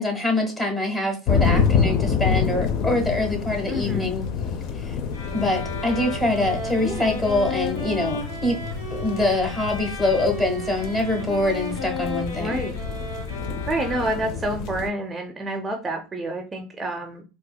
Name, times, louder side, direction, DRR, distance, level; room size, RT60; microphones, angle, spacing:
voice 1, 0.0-4.3 4.7-4.9 5.3-8.6 8.9-12.6, left 2 dB, 15° left, 2 dB, 1.4 m, -24 dB
sound 1, 1.3-14.9, left 6 dB, 60° left, 0.5 m, -27 dB
voice 2, 3.7-4.1 6.8-7.2 12.4-12.8 13.7-17.2, right 1 dB, 20° right, 4 dB, 0.5 m, -28 dB
sound 2, 5.1-14.6, left 1 dB, 85° left, 1.1 m, -34 dB
4.0 x 2.4 x 2.2 m, 0.32 s
supercardioid pair, 100°, 0 cm